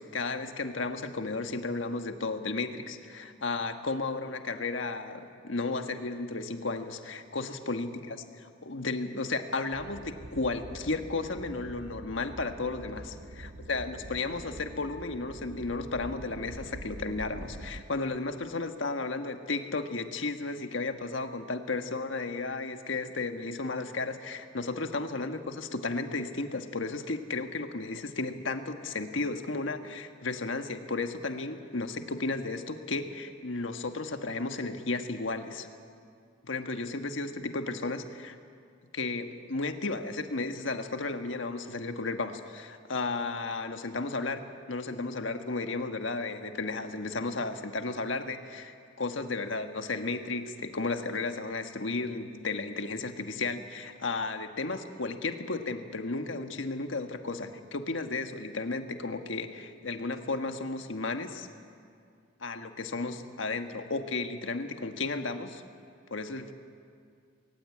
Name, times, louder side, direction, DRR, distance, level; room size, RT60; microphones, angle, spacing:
voice 1, 0.0-35.7 36.4-38.4 38.9-61.5 62.4-65.6 66.1-66.5, left 3 dB, 80° left, 7 dB, 1.4 m, -34 dB
sound 1, 9.7-17.8, right 1 dB, 50° right, 0.9 m, -45 dB
20.5 x 19.0 x 8.5 m, 2.3 s
head